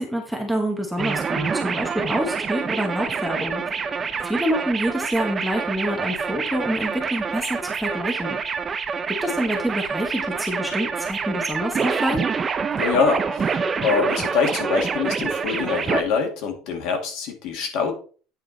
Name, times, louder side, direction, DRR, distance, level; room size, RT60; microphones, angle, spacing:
voice 1, 0.0-3.6 4.2-8.4 9.1-12.2, equal, ahead, 0 dB, 1.1 m, -27 dB
sound 1, 1.0-16.0, right 5 dB, 15° right, 0.5 m, -26 dB
voice 2, 12.8-17.9, left 5 dB, 50° left, 4 dB, 1.9 m, -24 dB
9.1 x 4.9 x 3.9 m, 0.39 s
cardioid pair, 180°, 0 cm